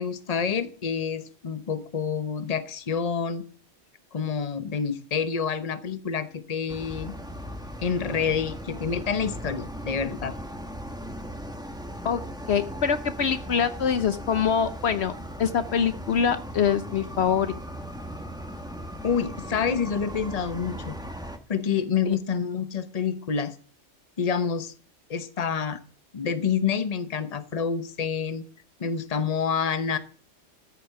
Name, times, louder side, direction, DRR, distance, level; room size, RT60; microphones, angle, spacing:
voice 1, 0.0-3.4 4.1-7.1 7.8-10.3 19.0-20.9 21.5-23.5 24.2-24.7 25.1-25.8 26.1-28.4 28.8-30.0, left 6 dB, 35° left, 12 dB, 1.0 m, -28 dB
sound 1, 6.7-21.4, equal, 5° right, 1.2 m, -38 dB
voice 2, 12.5-15.1 15.4-17.5, left 7 dB, 65° left, 12 dB, 1.0 m, -24 dB
13.5 x 7.3 x 7.0 m, 0.40 s
omnidirectional pair, 1.2 m